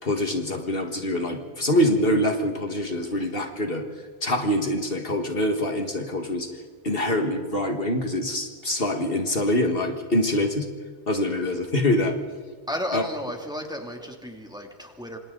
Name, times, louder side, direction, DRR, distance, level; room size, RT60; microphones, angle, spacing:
voice 1, 0.0-3.9 4.2-6.5 6.8-10.7 11.1-12.2 12.9-13.0, left 1 dB, 55° left, 4 dB, 2.1 m, -25 dB
voice 2, 12.7-15.2, equal, 5° right, 2 dB, 2.8 m, -33 dB
27.0 x 27.0 x 4.0 m, 1.5 s
omnidirectional pair, 1.2 m